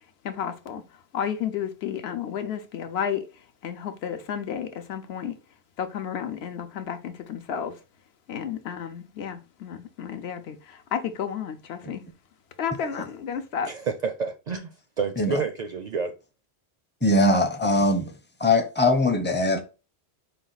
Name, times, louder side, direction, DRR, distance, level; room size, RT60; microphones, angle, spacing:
voice 1, 0.2-0.8 1.1-3.3 3.6-5.3 5.8-7.7 8.3-12.0 12.6-13.7, left 8 dB, 75° left, 0.9 m, -32 dB
voice 2, 13.6-16.2, right 5 dB, 55° right, 0.5 m, -29 dB
voice 3, 17.0-18.1 18.4-19.6, left 2 dB, 15° left, 0.5 m, -21 dB
5.0 x 2.4 x 3.9 m
omnidirectional pair, 1.1 m